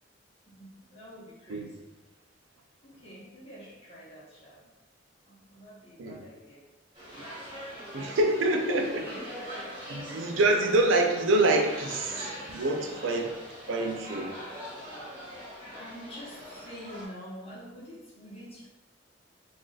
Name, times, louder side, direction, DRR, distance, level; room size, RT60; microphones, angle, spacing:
voice 1, 0.5-1.8 2.8-4.6 5.3-6.6 8.7-9.3 15.7-18.7, equal, 30° left, -6 dB, 1.0 m, -46 dB
sound 1, 6.9-17.1, equal, 25° right, 1.4 m, -42 dB
voice 2, 7.9-8.8 9.9-13.3 13.7-14.4, right 2 dB, 85° right, 3 dB, 0.5 m, -26 dB
2.5 x 2.4 x 3.9 m, 1.0 s
head